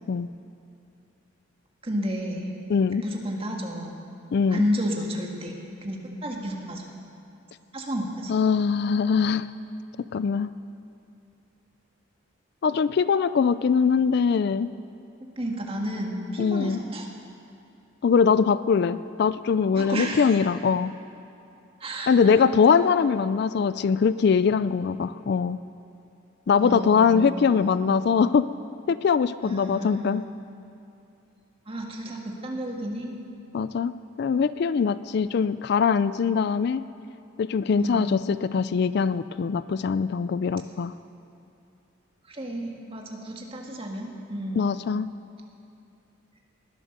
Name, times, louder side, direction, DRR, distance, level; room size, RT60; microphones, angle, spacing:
voice 1, 1.8-2.5 3.0-4.0 4.5-5.5 5.8-6.8 7.7-8.3 15.4-17.1 19.7-20.4 21.8-22.9 26.6-28.0 29.4-30.2 31.7-33.1 37.8-38.2 42.3-44.7, equal, 30° right, 0 dB, 1.8 m, -32 dB
voice 2, 2.7-3.0 4.3-4.6 8.3-9.5 10.0-10.5 12.6-14.7 16.4-16.8 18.0-20.9 22.1-25.6 26.5-28.5 28.9-30.2 33.5-33.9 34.2-36.8 37.4-40.9 44.6-45.1, left 6 dB, 55° left, 15 dB, 0.3 m, -22 dB
20.0 x 10.0 x 6.7 m, 2.7 s
head